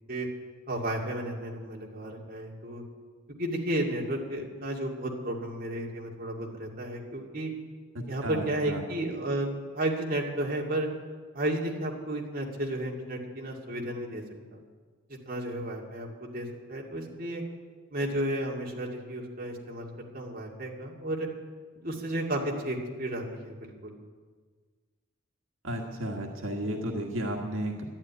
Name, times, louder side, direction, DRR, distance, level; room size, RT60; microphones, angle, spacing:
voice 1, 0.7-2.8 3.4-7.5 8.1-9.5 9.7-10.9 11.3-14.2 14.5-14.6 15.1-17.4 17.9-19.9 20.1-21.3 21.8-24.0, right 1 dB, 45° right, -1 dB, 2.4 m, -33 dB
voice 2, 7.9-8.8 25.6-27.8, right 1 dB, 80° right, 1 dB, 1.7 m, -33 dB
11.5 x 11.5 x 9.6 m, 1.5 s
head